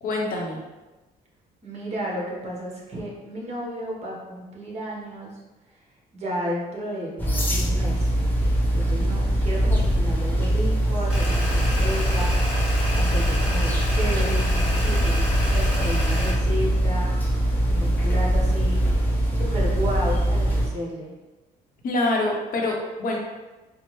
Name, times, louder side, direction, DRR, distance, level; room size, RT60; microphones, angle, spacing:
voice 1, 0.0-0.6 21.8-23.2, left 2 dB, 55° left, -1 dB, 0.8 m, -25 dB
voice 2, 1.6-5.3 6.1-8.1 8.7-12.6 12.9-17.1 17.7-18.9 19.3-21.1, equal, 40° right, -4 dB, 1.2 m, -32 dB
sound 1, 7.2-20.7, right 1 dB, 10° left, 0.7 m, -22 dB
sound 2, 11.1-16.3, left 1 dB, 5° right, 1.5 m, -28 dB
4.4 x 2.0 x 3.0 m, 1.1 s
cardioid pair, 110°, 17 cm